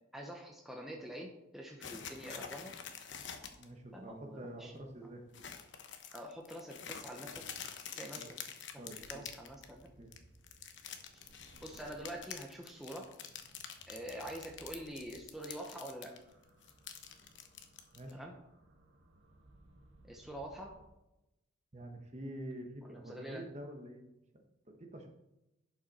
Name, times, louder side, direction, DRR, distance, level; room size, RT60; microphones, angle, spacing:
voice 1, 0.1-2.7 3.9-4.7 6.1-7.4 7.9-8.2 9.1-9.9 11.6-13.1 13.9-16.1 18.1-18.3 20.0-20.7 22.9-23.4, right 1 dB, ahead, 0 dB, 0.9 m, -46 dB
sound 1, 1.8-3.6 4.0-4.1 4.5-4.8 5.3-9.9 10.1-16.2 16.4-18.1, left 7 dB, 65° left, 1.0 m, -47 dB
voice 2, 3.6-5.2 8.1-8.3 8.7-9.2 10.0-10.1 17.9-18.2 21.7-24.0 24.3-25.1, right 1 dB, 35° right, 3 dB, 1.2 m, -47 dB
sound 2, 9.0-20.9, right 1 dB, 75° right, 1.3 m, -63 dB
11.0 x 5.6 x 4.3 m, 0.92 s
head